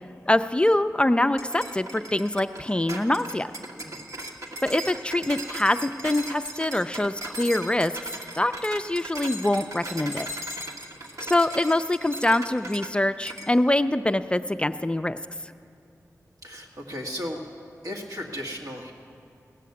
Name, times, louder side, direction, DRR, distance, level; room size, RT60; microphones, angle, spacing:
voice 1, 0.3-3.5 4.6-7.9 8.3-10.3 11.2-15.2, left 1 dB, 15° left, 10 dB, 0.3 m, -24 dB
sound 1, 1.4-12.9 13.3-13.5, right 1 dB, 60° right, 1.2 m, -38 dB
voice 2, 10.9-11.5 16.4-17.4 17.8-18.9, equal, 80° right, 0 dB, 1.7 m, -36 dB
17.5 x 6.7 x 8.4 m, 2.4 s
wide cardioid pair, 85°, 6 cm